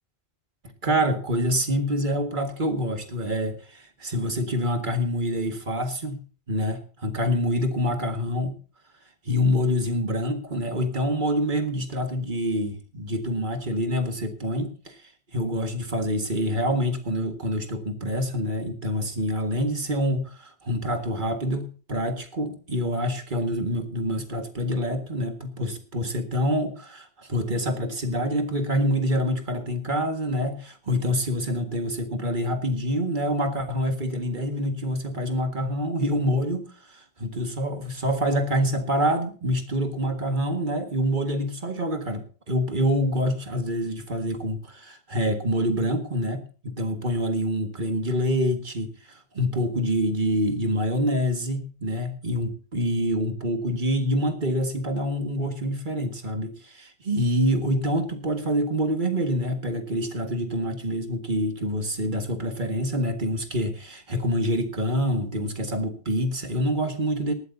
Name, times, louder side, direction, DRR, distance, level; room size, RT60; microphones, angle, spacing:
voice 1, 0.8-8.5 9.3-67.3, equal, 50° right, 6 dB, 2.0 m, -26 dB
19.0 x 13.0 x 2.7 m, 0.37 s
omnidirectional pair, 1.1 m